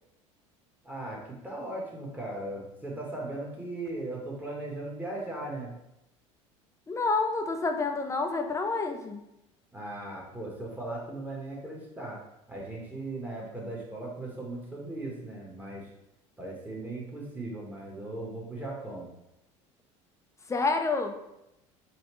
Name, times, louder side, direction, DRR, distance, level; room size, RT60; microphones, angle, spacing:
voice 1, 0.8-5.7 9.7-12.2 12.5-15.9 16.4-19.1, right 2 dB, 10° right, -3 dB, 1.2 m, -38 dB
voice 2, 6.9-9.2 20.5-21.2, left 3 dB, 20° left, 5 dB, 0.5 m, -28 dB
4.1 x 2.3 x 3.0 m, 0.88 s
hypercardioid pair, 75°, 16 cm